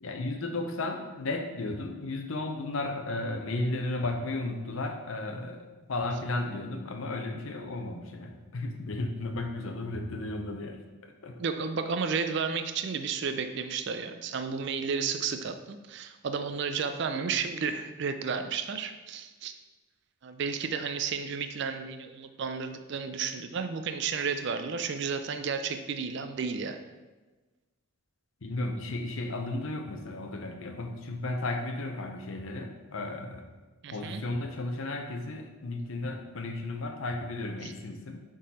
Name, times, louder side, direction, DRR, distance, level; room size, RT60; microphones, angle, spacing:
voice 1, 0.0-5.6 5.9-11.4 28.4-33.5 33.9-38.2, left 2 dB, 70° left, 4 dB, 0.7 m, -34 dB
voice 2, 11.4-19.5 20.2-26.8 33.8-34.2 37.6-37.7, right 5 dB, 55° right, 9 dB, 0.4 m, -32 dB
6.4 x 3.8 x 4.2 m, 1.2 s
head